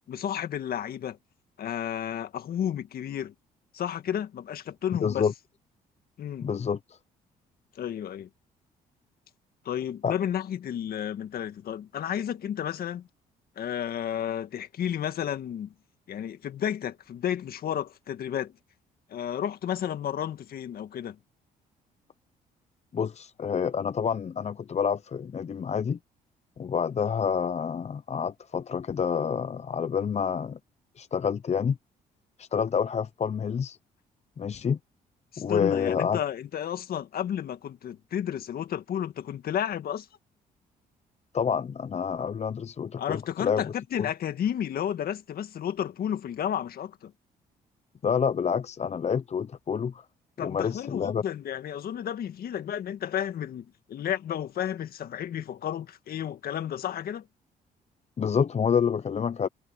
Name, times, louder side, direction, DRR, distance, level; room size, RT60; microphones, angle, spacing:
voice 1, 0.1-1.2 1.6-3.3 3.7-5.3 6.2-6.5 7.8-8.3 9.7-13.1 13.6-15.7 16.1-18.5 19.1-21.2 35.3-40.1 43.0-47.1 50.4-57.3, left 9 dB, 65° left, 1.9 m, -32 dB
voice 2, 5.0-5.3 6.4-7.0 10.0-10.2 22.9-26.0 26.6-30.6 31.0-31.8 32.4-33.8 34.4-34.8 35.4-36.2 41.3-43.6 44.0-44.1 48.0-50.1 50.4-51.2 58.2-59.5, left 7 dB, 40° left, 0.8 m, -28 dB
supercardioid pair, 65°, 17 cm